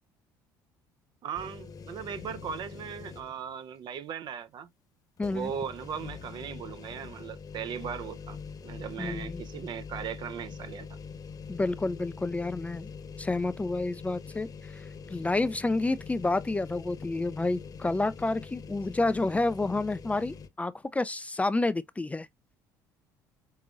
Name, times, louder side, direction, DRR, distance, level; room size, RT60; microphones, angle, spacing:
voice 1, 1.2-4.7 5.3-10.9, right 8 dB, 55° right, 0.7 m, -38 dB
sound 1, 1.3-3.5 3.9-4.0 5.2-20.5, left 5 dB, 40° left, 1.1 m, -44 dB
voice 2, 5.2-5.5 9.0-9.4 11.5-12.9 13.2-22.3, left 2 dB, 15° left, 0.5 m, -29 dB
5.3 x 3.7 x 2.4 m
hypercardioid pair, 65°, 9 cm